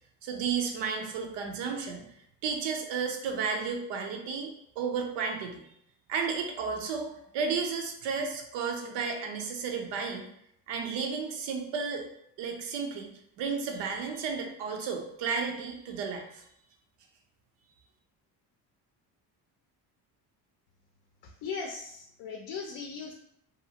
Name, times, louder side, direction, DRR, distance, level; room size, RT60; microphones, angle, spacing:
voice 1, 0.2-2.0 2.4-5.6 6.1-10.3 10.7-12.0 12.4-13.1 13.4-16.4, right 5 dB, 85° right, 3 dB, 0.7 m, -33 dB
voice 2, 21.2-23.1, left 5 dB, 65° left, 2 dB, 0.5 m, -38 dB
2.7 x 2.4 x 2.8 m, 0.74 s
cardioid pair, 120°, 42 cm